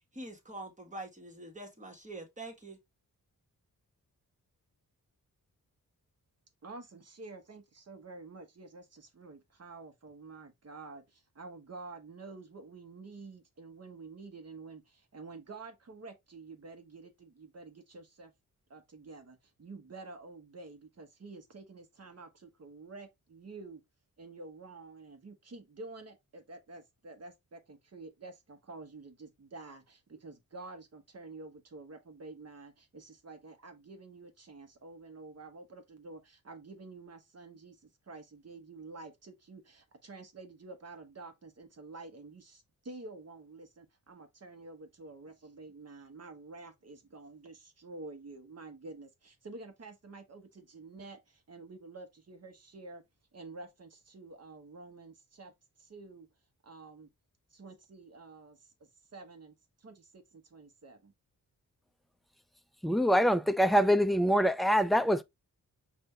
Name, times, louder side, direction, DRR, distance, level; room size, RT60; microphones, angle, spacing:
voice 1, 0.0-2.8, right 2 dB, 20° right, 1.6 m, -45 dB
voice 2, 6.6-18.3 18.7-23.8 24.2-53.0 53.3-55.5 55.8-56.3 56.6-57.1 57.5-58.7 59.1-61.1, right 3 dB, 45° right, 1.2 m, -49 dB
voice 3, 62.8-65.2, equal, ahead, 0.3 m, -25 dB
5.4 x 2.7 x 3.3 m
cardioid pair, 80°, 35 cm